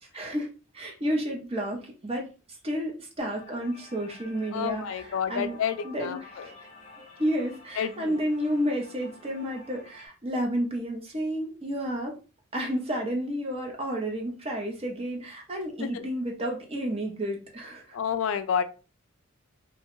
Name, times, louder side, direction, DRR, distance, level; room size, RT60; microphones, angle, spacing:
voice 1, 0.1-0.5 0.7-2.3 2.6-5.6 5.8-6.5 7.2-12.1 12.5-18.0, equal, 30° right, 0.6 m, -31 dB
sound 1, 3.2-10.1, left 3 dB, 35° left, 0.6 m, -50 dB
voice 2, 4.5-6.2 7.8-8.1 15.8-16.1 17.9-18.6, left 8 dB, 70° left, 0.3 m, -29 dB
2.9 x 2.2 x 3.0 m
head